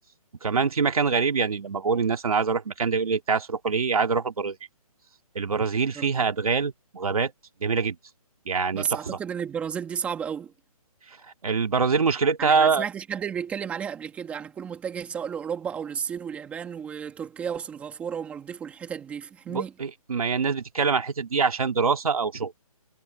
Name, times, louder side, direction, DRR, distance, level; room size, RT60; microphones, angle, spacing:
voice 1, 0.4-4.6 5.3-7.3 7.6-8.0 8.5-9.2 11.4-12.8 19.5-22.5, right 5 dB, 70° right, 3.1 m, -24 dB
voice 2, 8.7-10.5 12.4-19.7, right 7 dB, 5° right, 2.9 m, -33 dB
hypercardioid pair, 170°, 19 cm